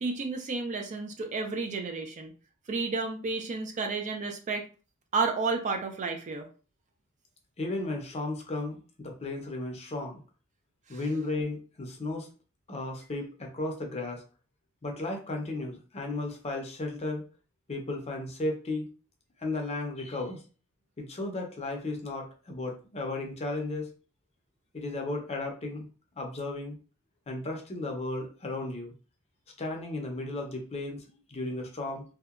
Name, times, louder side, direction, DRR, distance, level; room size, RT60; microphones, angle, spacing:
voice 1, 0.0-2.3 2.7-4.6 5.1-6.5 10.9-11.0, right 4 dB, 35° right, 4 dB, 0.3 m, -31 dB
voice 2, 7.6-10.2 10.9-12.3 12.7-14.2 14.8-17.2 17.7-18.9 19.4-20.4 21.0-23.9 24.7-25.9 26.2-26.8 27.3-28.9 29.6-32.0, left 2 dB, 30° left, 2 dB, 0.5 m, -34 dB
2.7 x 2.1 x 2.4 m, 0.37 s
head